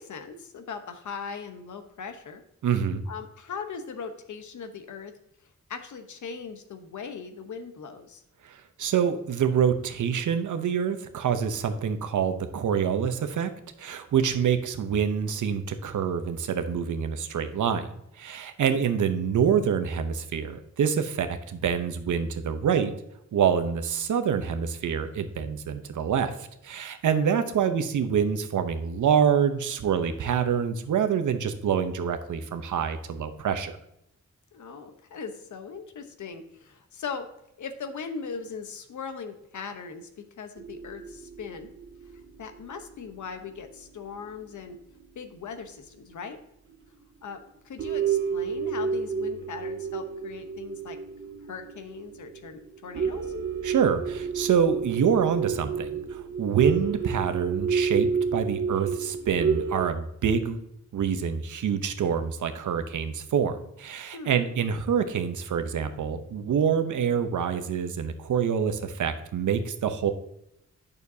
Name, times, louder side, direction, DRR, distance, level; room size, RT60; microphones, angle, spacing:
voice 1, 0.0-2.4 3.1-5.1 5.7-8.2 18.6-18.8 34.5-37.3 37.6-40.1 40.4-41.7 42.4-44.8 45.1-46.4 47.2-47.4 47.6-51.0 51.5-53.3 64.1-64.4, left 5 dB, 80° left, 7 dB, 1.0 m, -39 dB
voice 2, 2.6-3.0 8.4-13.5 13.8-17.9 18.2-22.9 23.3-26.3 26.6-33.8 53.6-60.6 60.9-70.1, right 7 dB, 85° right, 9 dB, 0.8 m, -26 dB
sound 1, 40.6-44.5 45.0-45.1 46.1-46.2 46.7-46.8 47.3-47.5 47.8-59.9, right 6 dB, 45° right, 0.6 m, -30 dB
8.9 x 6.6 x 2.7 m, 0.79 s
wide cardioid pair, 115°, 30 cm